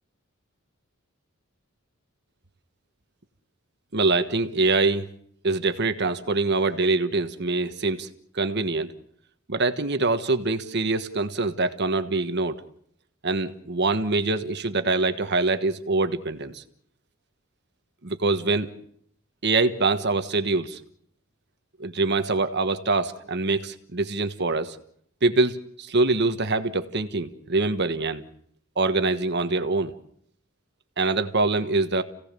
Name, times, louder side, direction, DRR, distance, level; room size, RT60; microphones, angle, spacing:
voice 1, 3.9-5.1 5.4-8.1 8.3-8.9 9.5-12.6 13.2-16.6 18.0-18.7 19.4-20.8 21.8-24.8 25.2-28.2 28.8-29.9 31.0-32.0, right 3 dB, 55° right, 9 dB, 1.4 m, -24 dB
29.5 x 17.5 x 6.8 m, 0.67 s
head